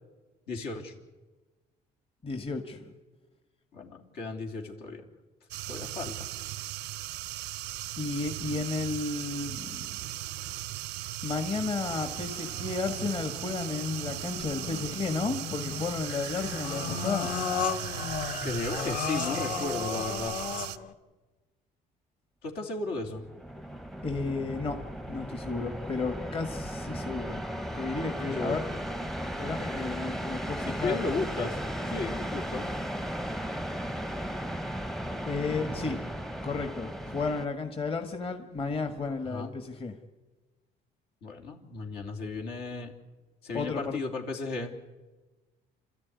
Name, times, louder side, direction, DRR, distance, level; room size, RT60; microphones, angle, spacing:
voice 1, 0.5-0.9 3.7-5.0 5.7-6.3 18.4-20.4 22.4-23.2 28.2-28.6 30.7-31.6 31.8-32.7 39.2-39.5 41.2-43.0 43.4-44.7, left 3 dB, 75° left, 2 dB, 3.3 m, -35 dB
voice 2, 2.2-2.9 8.0-10.0 11.2-17.3 24.0-24.8 25.1-27.4 27.7-28.6 29.4-31.0 35.3-36.0 36.4-39.9 43.5-44.0, left 4 dB, 35° left, 6 dB, 1.7 m, -33 dB
sound 1, 5.5-20.8, right 16 dB, 85° right, 0.6 m, -38 dB
sound 2, 11.9-20.9, left 6 dB, 50° left, 1.9 m, -35 dB
sound 3, 23.0-37.5, equal, ahead, 0.8 m, -36 dB
28.5 x 13.5 x 9.6 m, 1.2 s
cardioid pair, 110°, 17 cm